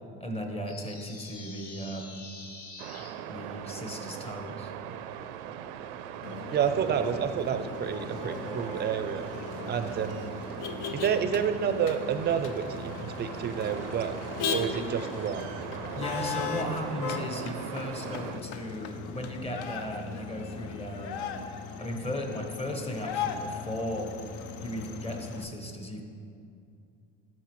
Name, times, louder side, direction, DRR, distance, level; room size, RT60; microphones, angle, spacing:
voice 1, 0.2-2.3 3.3-4.7 16.0-21.3 21.8-24.1 24.6-26.0, equal, 20° left, 3 dB, 1.0 m, -36 dB
sound 1, 0.7-3.1, left 3 dB, 45° left, 1.3 m, -46 dB
sound 2, 2.8-18.4, right 9 dB, 85° right, 0.5 m, -40 dB
Motor vehicle (road), 6.2-25.4, left 6 dB, 65° left, 0.6 m, -38 dB
voice 2, 6.5-9.3 9.7-10.3 10.9-14.2 14.5-15.5, right 7 dB, 30° right, 10 dB, 0.4 m, -29 dB
12.5 x 4.5 x 3.1 m, 2.5 s
supercardioid pair, 100°, 34 cm